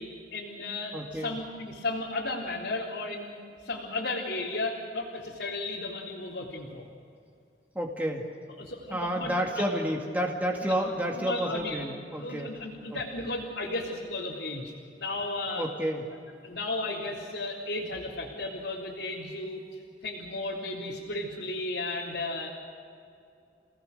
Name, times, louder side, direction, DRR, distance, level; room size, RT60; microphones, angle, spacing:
voice 1, 0.0-3.3 3.6-6.9 8.6-9.6 10.6-10.7 11.1-11.8 12.2-15.7 16.4-19.6 20.0-22.5, left 2 dB, 80° left, -5 dB, 3.5 m, -34 dB
voice 2, 0.9-1.3 7.8-8.3 8.9-12.5 12.9-13.0 15.6-16.0, equal, 10° right, 0 dB, 2.1 m, -30 dB
30.0 x 18.5 x 6.7 m, 2.5 s
head